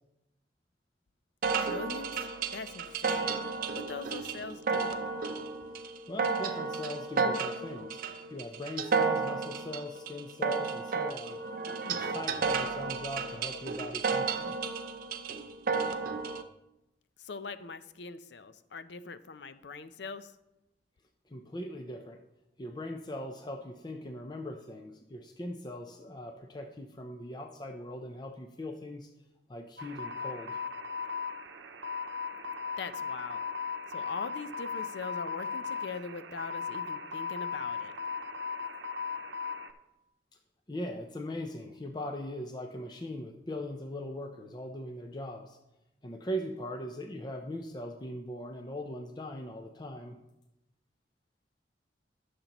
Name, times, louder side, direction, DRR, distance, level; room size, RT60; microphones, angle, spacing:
sound 1, 1.4-16.4, right 5 dB, 50° right, 0.6 m, -32 dB
voice 1, 1.6-3.4 3.7-4.9 17.2-20.3 32.8-33.4 33.9-37.9, left 4 dB, 70° left, 12 dB, 0.6 m, -42 dB
voice 2, 6.1-8.0 8.3-11.4 11.8-14.6 21.3-22.2 22.6-29.1 29.5-30.6 40.7-45.6 46.0-50.2, left 1 dB, 25° left, 3 dB, 0.6 m, -40 dB
sound 2, 29.8-39.7, left 5 dB, 85° right, 0.7 m, -37 dB
14.5 x 6.7 x 3.0 m, 0.93 s
head